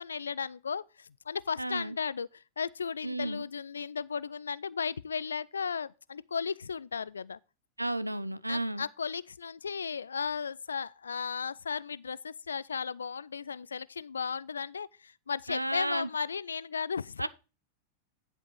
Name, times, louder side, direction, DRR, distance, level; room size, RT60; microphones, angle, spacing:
voice 1, 0.0-7.4 8.5-17.3, left 6 dB, 70° left, 0.4 m, -35 dB
voice 2, 1.6-2.0 3.0-3.4 7.8-8.9 15.5-16.1 17.2-17.3, right 1 dB, 85° right, 0.6 m, -32 dB
11.0 x 5.2 x 4.5 m
figure-of-eight pair, 90°, 0 cm